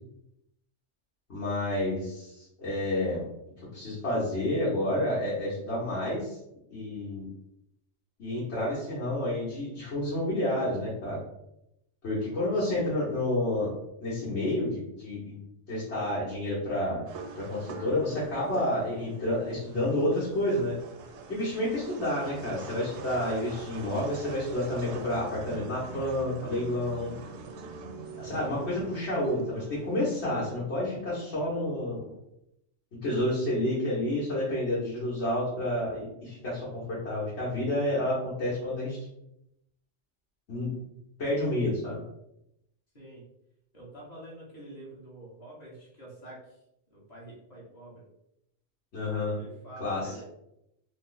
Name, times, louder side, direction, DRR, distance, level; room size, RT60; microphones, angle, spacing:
voice 1, 1.3-3.3 3.6-6.4 6.7-7.3 8.2-11.2 12.0-13.7 14.0-15.4 15.7-17.1 17.3-20.8 21.3-27.2 28.2-32.1 33.0-39.0 40.5-40.7 41.2-42.0 48.9-49.4 49.8-50.2, left 1 dB, 65° left, -8 dB, 1.5 m, -30 dB
sound 1, 17.1-30.6, right 4 dB, 70° right, 0.8 m, -44 dB
voice 2, 28.2-28.9 42.9-43.2 43.7-46.6 46.9-48.0 49.3-50.2, right 1 dB, 35° left, -6 dB, 1.3 m, -47 dB
3.7 x 2.1 x 3.9 m, 0.82 s
omnidirectional pair, 1.2 m